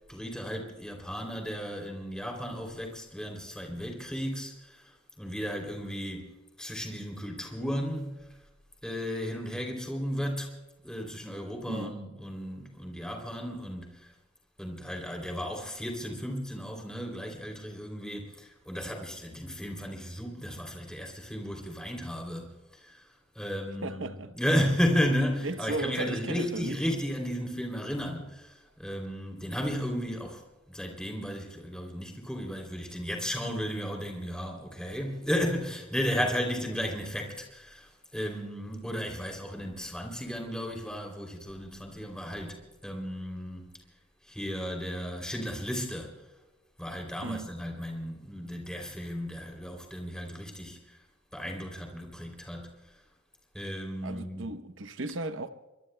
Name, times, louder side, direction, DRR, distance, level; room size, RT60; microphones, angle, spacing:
voice 1, 0.1-6.3 6.6-8.2 8.8-10.5 10.8-14.1 14.6-23.1 23.3-43.6 44.2-46.1 46.8-51.0 51.3-52.8 53.5-54.5, equal, 5° left, 3.0 m, -34 dB
voice 2, 23.8-24.3 25.4-26.8 47.2-47.5 54.0-55.5, right 2 dB, 70° right, 0.8 m, -35 dB
27.5 x 23.5 x 2.2 m
head